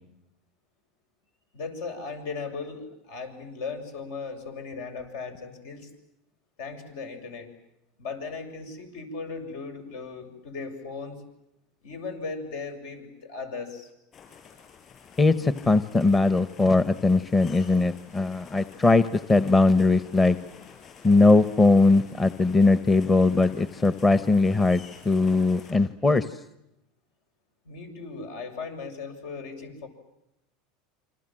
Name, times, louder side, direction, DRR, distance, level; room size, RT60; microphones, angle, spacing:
voice 1, 1.5-5.9 6.6-7.5 8.0-11.2 11.8-13.9 27.7-29.9, left 4 dB, 75° left, 6 dB, 7.3 m, -37 dB
sound 1, 14.1-25.7, left 6 dB, 35° left, 7.9 m, -50 dB
voice 2, 15.2-20.4 21.0-26.4, left 3 dB, 15° left, 13 dB, 1.0 m, -20 dB
28.5 x 26.0 x 7.6 m, 0.86 s
supercardioid pair, 125°, 0 cm